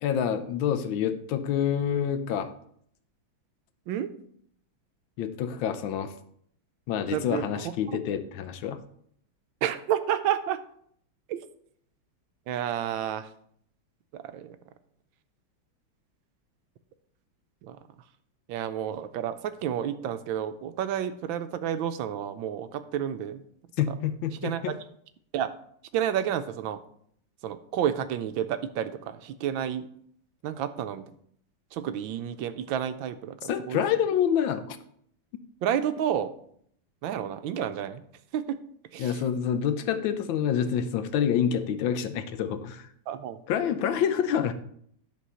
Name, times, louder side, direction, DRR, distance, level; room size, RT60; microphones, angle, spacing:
voice 1, 0.0-2.5 5.2-6.1 6.9-8.8 23.8-24.7 33.4-34.8 39.0-42.9 43.5-44.5, left 8 dB, 80° left, 10 dB, 1.4 m, -27 dB
voice 2, 7.1-7.7 9.6-10.6 11.3-11.4 12.5-13.3 14.1-14.6 17.6-17.8 18.5-23.4 23.9-24.0 24.4-24.7 25.3-25.5 25.9-26.8 27.4-29.9 30.4-31.1 31.7-33.8 35.6-36.3 37.0-38.0 38.3-38.6 38.9-39.2 43.1-43.4, right 10 dB, 80° right, 11 dB, 1.3 m, -30 dB
10.5 x 4.0 x 5.5 m, 0.65 s
omnidirectional pair, 2.2 m